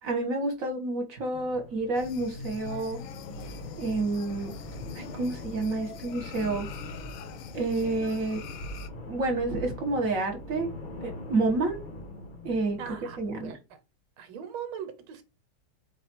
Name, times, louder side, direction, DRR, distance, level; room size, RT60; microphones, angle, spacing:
voice 1, 0.0-3.0 3.8-4.5 4.9-6.7 7.5-8.4 9.1-10.7 11.0-11.8 12.4-13.5, right 2 dB, 45° right, 1.4 m, -29 dB
sound 1, 1.3-13.5, left 1 dB, 50° left, 0.5 m, -42 dB
sound 2, 1.9-8.9, left 8 dB, 90° left, 1.5 m, -44 dB
voice 2, 12.8-13.2 13.4-13.6 14.2-15.2, right 8 dB, 80° right, 1.7 m, -39 dB
4.7 x 2.5 x 4.4 m
omnidirectional pair, 2.3 m